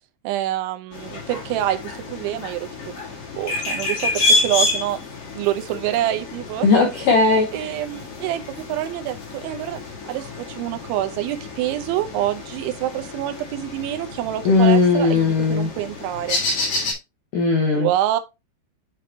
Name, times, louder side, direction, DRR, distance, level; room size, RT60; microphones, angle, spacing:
voice 1, 0.2-2.7 3.0-5.0 5.3-6.7 7.5-9.8 10.1-16.4 17.7-18.2, right 13 dB, 80° right, 3.1 m, -26 dB
sound 1, 0.9-16.9, left 2 dB, 50° left, 1.8 m, -29 dB
voice 2, 6.6-7.7 14.4-15.7 17.3-17.9, left 3 dB, 80° left, 1.9 m, -17 dB
8.1 x 5.1 x 2.9 m
omnidirectional pair, 5.6 m